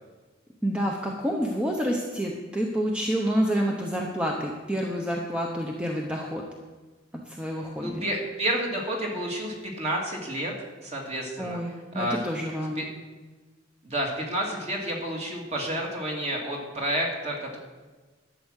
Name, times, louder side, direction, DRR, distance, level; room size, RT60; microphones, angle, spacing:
voice 1, 0.6-6.5 7.1-8.0 11.4-12.9, equal, 5° right, 0 dB, 0.9 m, -28 dB
voice 2, 7.8-10.5 10.8-11.6 11.9-12.2 12.8-12.9 13.8-17.6, right 1 dB, 35° right, -1 dB, 2.4 m, -30 dB
12.0 x 7.7 x 6.4 m, 1.3 s
head